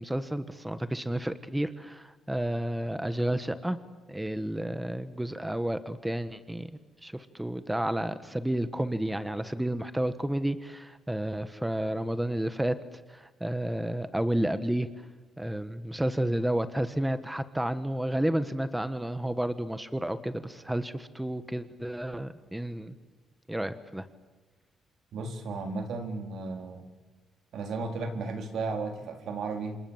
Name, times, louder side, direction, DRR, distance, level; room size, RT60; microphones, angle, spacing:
voice 1, 0.0-3.8 4.1-6.7 7.0-12.8 13.1-14.9 15.4-22.9 23.5-24.1, right 1 dB, 5° right, 12 dB, 1.4 m, -31 dB
voice 2, 25.1-26.8 27.5-29.8, right 3 dB, 70° right, 5 dB, 4.1 m, -34 dB
29.0 x 26.5 x 7.4 m, 1.2 s
cardioid pair, 90°, 0 cm